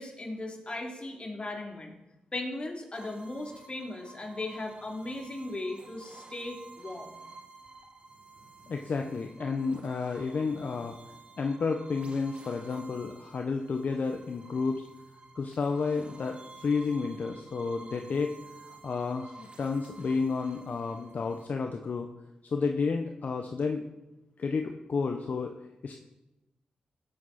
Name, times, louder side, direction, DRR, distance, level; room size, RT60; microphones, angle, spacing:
voice 1, 0.0-1.9 2.3-7.1, left 2 dB, 35° left, 1 dB, 3.0 m, -37 dB
sound 1, 2.9-21.5, right 3 dB, 40° right, 2.0 m, -51 dB
voice 2, 8.7-11.0 11.4-14.8 15.4-18.3 18.7-22.1 22.5-23.8 24.4-25.5 25.8-26.1, left 4 dB, 60° left, 4 dB, 0.9 m, -31 dB
16.0 x 7.8 x 4.2 m, 0.95 s
supercardioid pair, 50°, 3 cm